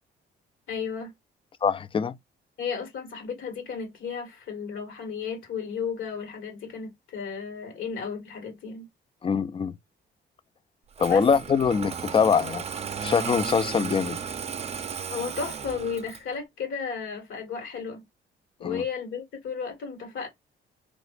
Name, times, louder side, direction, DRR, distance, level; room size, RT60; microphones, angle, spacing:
voice 1, 0.7-1.1 2.6-8.9 11.0-11.2 15.1-18.0 18.6-20.3, left 6 dB, 80° left, 1.8 m, -34 dB
voice 2, 1.6-2.2 9.2-9.7 11.0-12.6 13.0-14.2 18.6-18.8, left 6 dB, 25° left, 0.4 m, -23 dB
Engine starting, 10.9-16.3, right 6 dB, 30° right, 0.5 m, -34 dB
3.0 x 2.4 x 3.2 m
cardioid pair, 90°, 20 cm